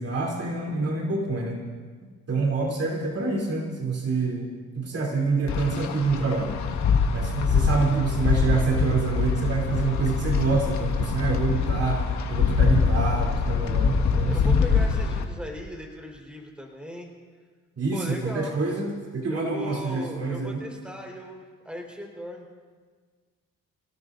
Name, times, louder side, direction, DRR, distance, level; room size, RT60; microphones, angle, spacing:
voice 1, 0.0-1.6 2.3-6.5 7.1-14.6 17.8-20.6, right 4 dB, 50° right, -1 dB, 3.4 m, -27 dB
Wind, 5.5-15.2, left 5 dB, 70° left, 1.8 m, -24 dB
voice 2, 14.0-17.1 17.9-18.6 19.3-22.5, left 1 dB, 5° right, 0 dB, 4.4 m, -38 dB
29.5 x 17.5 x 2.7 m, 1.5 s
cardioid pair, 90°, 30 cm